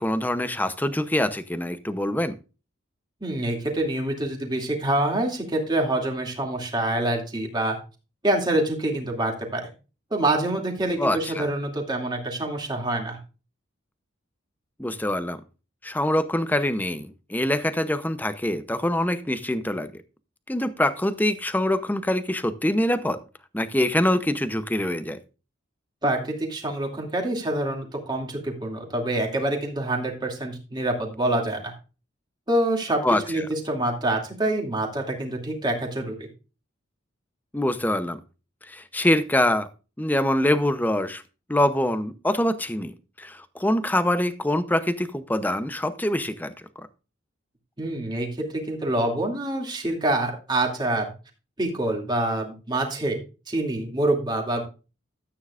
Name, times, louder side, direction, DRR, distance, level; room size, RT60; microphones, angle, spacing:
voice 1, 0.0-2.3 11.0-11.5 14.8-15.4 15.8-20.0 20.5-23.2 23.5-25.2 33.0-33.5 37.5-38.2 38.7-39.7 40.0-41.2 41.5-46.5, left 1 dB, 10° left, 12 dB, 0.7 m, -24 dB
voice 2, 3.2-7.8 8.2-9.6 10.1-13.2 26.0-31.7 32.5-33.0 33.3-36.3 47.8-51.1 51.6-53.2 53.5-54.6, right 1 dB, 20° right, 1 dB, 2.5 m, -26 dB
13.0 x 9.0 x 2.5 m, 0.32 s
head